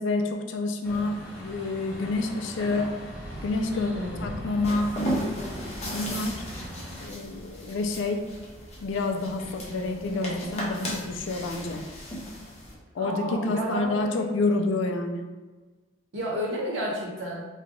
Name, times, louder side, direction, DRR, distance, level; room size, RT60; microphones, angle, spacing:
voice 1, 0.0-2.9 3.4-3.9 4.2-4.9 5.9-6.4 7.0-8.2 8.8-11.8 12.9-15.2, left 2 dB, 65° left, 4 dB, 0.4 m, -28 dB
Truck, 0.8-7.1, equal, 15° left, 1.3 m, -39 dB
voice 2, 3.7-4.3 13.0-14.3 16.1-17.5, equal, 65° right, -4 dB, 1.0 m, -32 dB
sound 1, 4.6-12.8, equal, 35° left, 0.8 m, -35 dB
3.3 x 2.2 x 3.7 m, 1.3 s
head